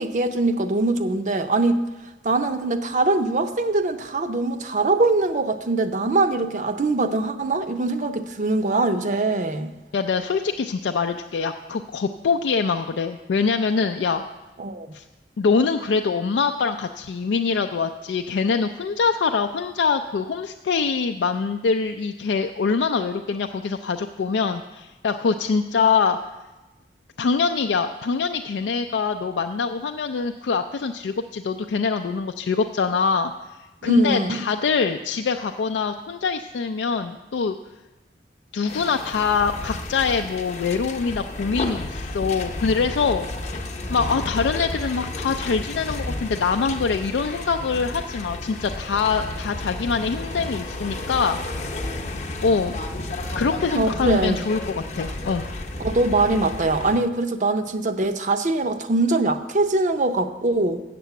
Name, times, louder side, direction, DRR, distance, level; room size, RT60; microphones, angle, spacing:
voice 1, 0.0-1.8 2.2-9.7 14.6-14.9 33.8-34.4 53.8-54.4 55.8-60.8, right 2 dB, 45° right, 9 dB, 0.6 m, -22 dB
voice 2, 9.9-14.2 14.9-15.0 15.4-26.2 27.2-33.3 33.8-37.6 38.5-43.3 43.9-51.4 52.4-52.8 53.3-55.5, left 5 dB, 85° left, 6 dB, 0.4 m, -24 dB
sound 1, 38.7-57.0, left 2 dB, 40° left, 0.7 m, -32 dB
7.4 x 6.8 x 8.1 m, 1.1 s
head